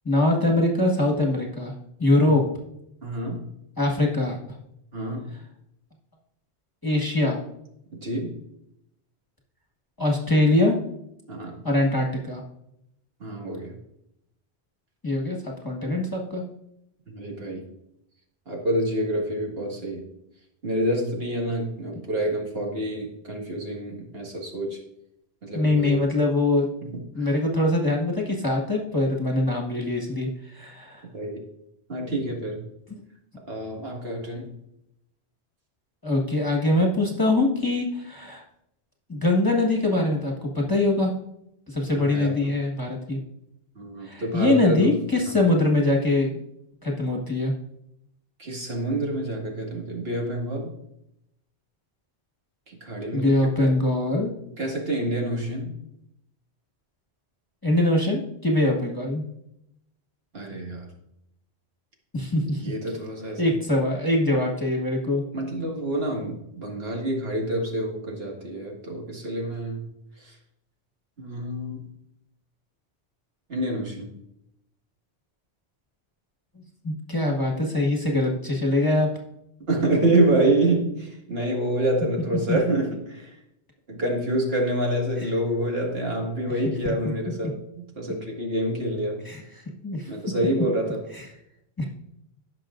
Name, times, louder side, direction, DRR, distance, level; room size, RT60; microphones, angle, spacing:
voice 1, 0.0-1.7 2.0-2.4 3.8-4.4 6.8-7.4 10.0-10.8 11.6-12.4 15.0-16.4 25.5-26.7 27.1-31.0 36.0-38.4 39.1-41.1 41.7-43.2 44.0-46.4 46.8-47.5 53.1-54.3 57.6-59.2 62.1-62.6 63.4-65.2 76.8-79.1 82.5-82.6 89.2-89.4 89.8-90.1 91.2-91.3 91.8-91.9, left 2 dB, 20° left, -1 dB, 1.4 m, -23 dB
voice 2, 3.0-3.5 4.9-5.3 7.9-8.3 11.3-11.6 13.2-13.8 17.1-17.7 18.5-20.0 20.6-24.8 25.4-26.0 26.9-27.3 31.1-31.4 31.9-32.6 33.5-34.5 42.0-42.5 43.8-44.9 45.3-45.4 48.4-50.7 52.7-53.7 54.6-55.7 60.3-60.9 62.6-63.5 65.3-69.8 70.2-70.4 71.2-71.8 73.5-74.1 79.7-83.4 83.9-89.2 90.1-91.0, right 1 dB, 65° right, 0 dB, 2.2 m, -27 dB
16.5 x 6.0 x 2.5 m, 0.79 s
omnidirectional pair, 1.1 m